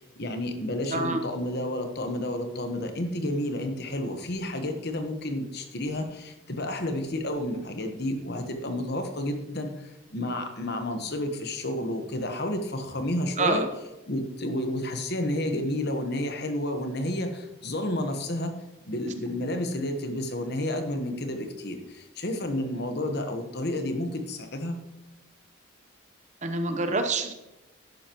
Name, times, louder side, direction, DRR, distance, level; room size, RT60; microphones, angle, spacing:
voice 1, 0.0-13.6 14.1-18.5 18.9-24.8, left 1 dB, 50° left, 6 dB, 1.2 m, -31 dB
voice 2, 0.9-1.2 13.4-13.7 26.4-27.3, right 2 dB, 35° right, 6 dB, 0.8 m, -26 dB
12.0 x 10.0 x 3.0 m, 0.96 s
head